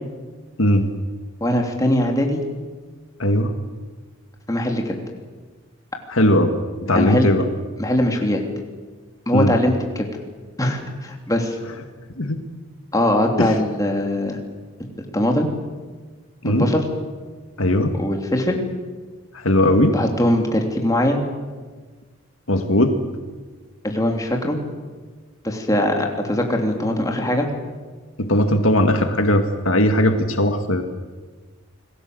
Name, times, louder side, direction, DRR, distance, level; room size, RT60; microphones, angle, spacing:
voice 1, 1.4-2.4 4.5-5.0 6.9-7.3 7.8-8.4 9.3-10.1 10.6-11.6 12.9-14.4 14.8-14.9 15.1-15.5 16.4-16.8 18.0-18.6 19.9-21.2 23.8-24.6 25.4-27.5, left 1 dB, 15° left, 2 dB, 3.1 m, -21 dB
voice 2, 3.2-3.5 6.1-6.5 6.8-7.5 9.3-9.5 12.2-12.4 13.4-13.5 16.4-16.7 17.6-18.0 19.3-20.0 22.5-23.0 28.2-30.8, left 1 dB, 70° left, 6 dB, 2.1 m, -18 dB
28.5 x 20.0 x 8.0 m, 1.4 s
head